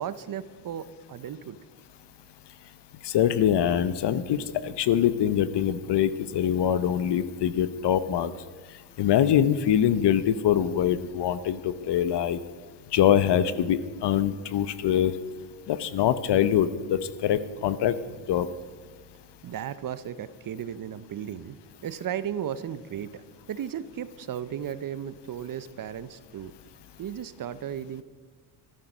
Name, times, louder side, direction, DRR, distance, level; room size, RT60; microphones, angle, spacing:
voice 1, 0.0-1.6 19.4-21.6 21.8-26.5 27.0-28.0, right 9 dB, 45° right, 15 dB, 0.7 m, -35 dB
voice 2, 3.0-8.3 9.0-12.4 12.9-15.1 15.7-18.0 18.3-18.5, left 10 dB, 60° left, 15 dB, 0.9 m, -24 dB
13.0 x 11.0 x 6.1 m, 1.4 s
cardioid pair, 90°, 48 cm